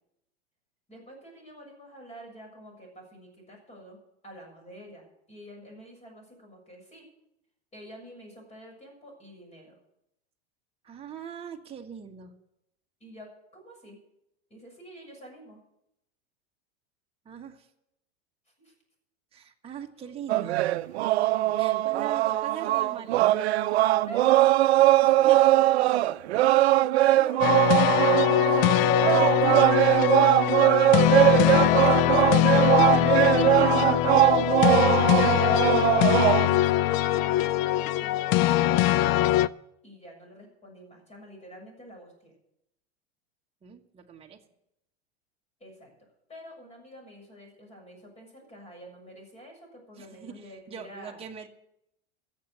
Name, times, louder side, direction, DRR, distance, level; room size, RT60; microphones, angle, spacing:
voice 1, 0.9-4.0 4.2-7.1 7.7-9.7 13.0-14.0 14.5-15.6 18.6-18.7 20.0-20.1 20.8-21.0 21.9-22.1 22.3-22.4 22.8-22.9 24.1-25.5 27.0-27.6 28.2-32.8 33.8-35.4 35.9-39.2 39.8-42.3 45.6-51.2, equal, 20° left, 2 dB, 6.9 m, -48 dB
voice 2, 10.8-12.3 17.2-17.7 19.3-20.7 21.6-23.8 25.0-25.4 26.5-27.7 43.6-44.4 50.0-51.5, right 8 dB, 20° right, 0 dB, 1.5 m, -42 dB
sound 1, 20.3-36.6, right 15 dB, 85° right, 0.6 m, -21 dB
sound 2, 27.4-39.5, left 15 dB, 45° left, 0.5 m, -22 dB
14.5 x 7.5 x 9.3 m, 0.82 s
supercardioid pair, 115°, 32 cm